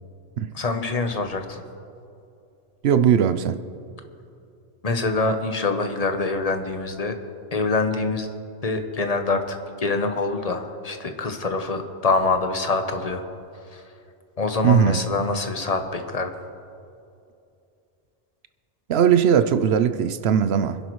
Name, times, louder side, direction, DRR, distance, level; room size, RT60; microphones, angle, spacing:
voice 1, 0.5-1.6 4.8-7.1 7.5-8.3 8.6-13.2 13.7-13.8 14.4-16.3, left 3 dB, 35° left, 6 dB, 1.0 m, -25 dB
voice 2, 2.8-3.6 14.6-15.0 18.9-20.8, right 8 dB, 65° right, 11 dB, 0.8 m, -19 dB
25.5 x 11.0 x 3.1 m, 2.6 s
omnidirectional pair, 1.2 m